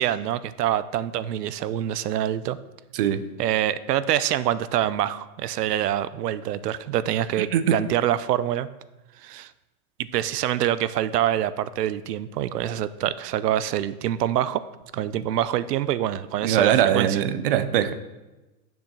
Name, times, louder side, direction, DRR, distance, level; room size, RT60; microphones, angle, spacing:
voice 1, 0.0-2.6 3.4-8.7 9.2-9.5 10.1-14.6 14.9-17.2, right 11 dB, 80° right, 16 dB, 0.7 m, -25 dB
voice 2, 2.9-3.3 7.5-7.8 16.4-17.9, right 9 dB, 40° right, 13 dB, 0.5 m, -21 dB
7.1 x 5.9 x 6.5 m, 1.1 s
hypercardioid pair, 150°, 47 cm